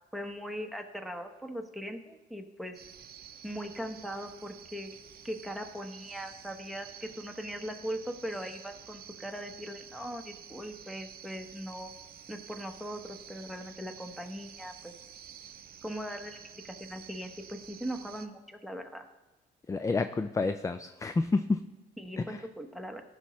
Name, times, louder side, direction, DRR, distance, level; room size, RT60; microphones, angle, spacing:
voice 1, 0.1-2.7 3.4-5.0 5.2-11.9 12.3-14.9 15.8-16.4 16.6-19.0 22.0-23.0, equal, ahead, 5 dB, 1.0 m, -40 dB
sound 1, 2.7-18.3, right 8 dB, 50° right, 0.7 m, -50 dB
voice 2, 19.7-21.6 22.2-22.4, left 3 dB, 15° left, 10 dB, 0.3 m, -29 dB
14.5 x 5.9 x 3.1 m, 1.2 s
cardioid pair, 90°, 20 cm